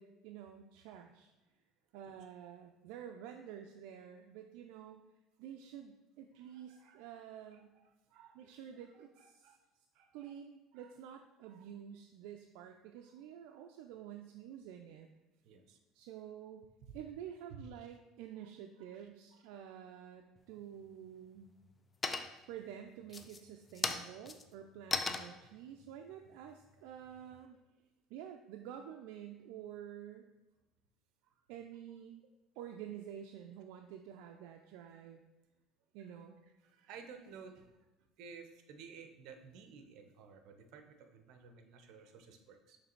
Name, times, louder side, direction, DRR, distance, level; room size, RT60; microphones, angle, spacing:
voice 1, 0.0-1.3 1.9-5.0 5.4-7.7 8.3-9.5 10.1-15.1 15.9-16.7 16.9-21.5 22.5-27.6 28.1-30.3 31.5-32.2 32.6-35.2 35.9-36.4, right 9 dB, 80° right, 4 dB, 0.4 m, -49 dB
voice 2, 6.4-7.1 7.5-8.5 8.9-9.6 9.9-10.3 10.7-10.9 11.5-11.7 13.5-13.6 15.4-15.8 16.8-16.9 17.5-17.9 18.9-19.5 31.2-31.4 36.6-37.7 38.2-42.8, right 5 dB, 65° right, 6 dB, 0.8 m, -55 dB
sound 1, 20.4-20.9 21.4-21.8 22.0-22.6 23.0-27.5, left 4 dB, 20° left, 0.4 m, -39 dB
6.6 x 3.2 x 4.5 m, 1.1 s
cardioid pair, 130°, 0 cm